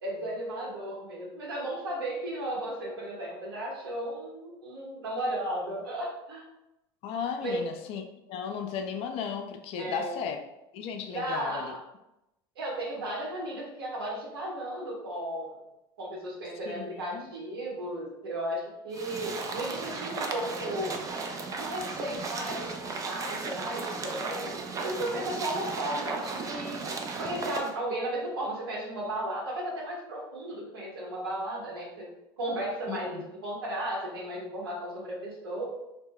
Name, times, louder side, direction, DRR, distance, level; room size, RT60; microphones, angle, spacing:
voice 1, 0.0-6.4 7.4-7.6 9.8-10.3 11.1-11.8 12.6-15.6 16.0-21.0 21.6-22.7 23.0-24.5 24.8-26.8 27.2-32.1 32.4-35.7, right 1 dB, 85° right, -3 dB, 0.9 m, -34 dB
voice 2, 7.0-8.0 8.3-10.4 10.7-11.7 16.7-17.3 32.9-33.2, left 7 dB, 55° left, 5 dB, 0.4 m, -35 dB
sound 1, 18.9-27.7, right 4 dB, 25° right, 0.4 m, -35 dB
2.1 x 2.1 x 3.7 m, 0.89 s
hypercardioid pair, 85°, 12 cm